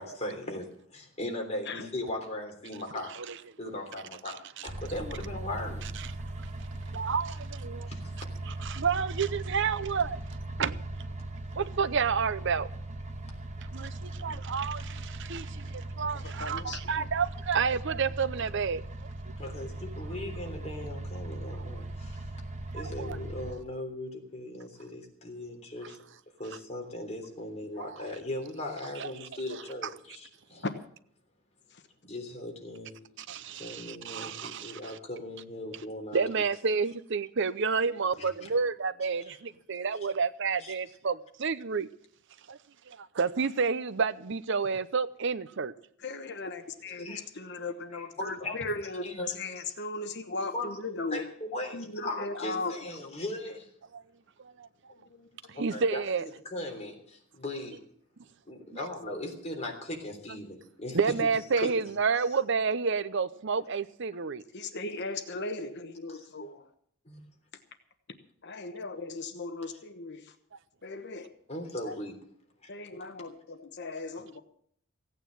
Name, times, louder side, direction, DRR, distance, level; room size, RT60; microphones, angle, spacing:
voice 1, 0.0-3.1 3.6-5.8 7.9-8.1 16.2-16.3 19.4-22.3 22.7-26.0 26.4-30.7 32.0-32.9 33.6-36.4 38.2-38.5 39.3-39.4 40.0-40.1 40.6-40.7 47.0-47.2 47.9-49.7 50.5-50.8 51.1-53.7 55.5-57.8 58.5-61.3 61.6-61.7 66.1-66.3 67.0-67.2 71.5-72.2 72.6-72.7, left 1 dB, 30° left, 3.4 m, -38 dB
voice 2, 4.3-4.6 6.9-7.9 8.5-10.2 10.6-10.8 11.6-12.7 13.7-18.8 22.8-23.2 29.0-29.1 33.2-35.0 36.1-41.9 42.5-42.6 42.9-45.7 54.6-54.7 55.6-56.2 58.7-58.8 60.9-64.4, right 5 dB, 60° right, 0.7 m, -30 dB
sound 1, 4.7-23.5, right 2 dB, 35° right, 1.4 m, -39 dB
voice 3, 16.4-17.1 30.6-30.7 46.0-49.1 49.3-51.2 51.7-52.8 55.2-55.3 64.5-66.7 68.4-70.3 70.8-71.3 71.9-72.0 72.7-74.4, left 3 dB, 55° left, 1.2 m, -37 dB
16.0 x 9.2 x 7.6 m
head